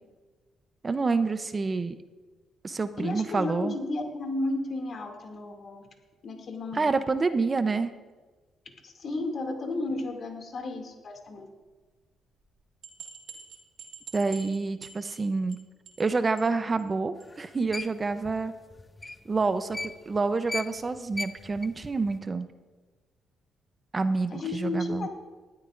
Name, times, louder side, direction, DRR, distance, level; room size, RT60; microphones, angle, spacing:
voice 1, 0.8-1.9 2.6-3.7 6.7-7.9 14.1-15.6 16.0-18.5 19.3-22.5 23.9-25.1, right 4 dB, 30° right, 10 dB, 0.7 m, -28 dB
voice 2, 3.0-5.8 6.2-6.9 8.8-11.5 24.3-25.1, left 2 dB, 50° left, 3 dB, 2.5 m, -33 dB
sound 1, 12.4-12.5 12.8-15.6 15.8-16.1 16.4-16.5 16.8-16.9 17.2-17.3, right 6 dB, 75° right, 2.0 m, -46 dB
sound 2, 17.2-20.2 20.5-22.2, left 2 dB, 20° left, 0.6 m, -37 dB
19.5 x 12.5 x 2.6 m, 1.3 s
cardioid pair, 90°, 0 cm